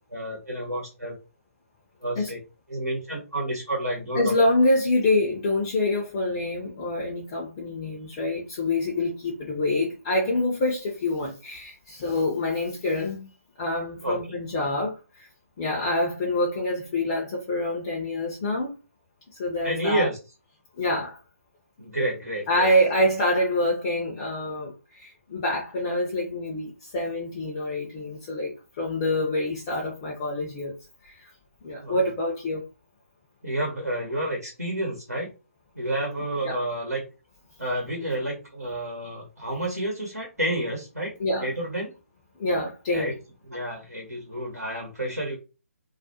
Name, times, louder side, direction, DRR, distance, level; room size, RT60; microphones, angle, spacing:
voice 1, 0.1-1.2 2.0-2.4 2.7-4.3 14.0-14.4 19.6-20.2 21.8-22.7 31.8-32.1 33.4-35.3 35.7-37.0 37.6-41.1 41.4-41.9 42.9-43.1 43.4-45.3, right 1 dB, 85° right, 0.9 m, -30 dB
voice 2, 4.2-13.3 13.6-15.3 15.6-18.7 19.4-20.1 20.8-21.2 22.5-30.7 31.0-31.3 31.6-32.6 36.4-36.6 41.2-41.5 42.4-43.1, left 1 dB, 25° left, 0.4 m, -26 dB
2.3 x 2.0 x 2.7 m
figure-of-eight pair, 140°, 8 cm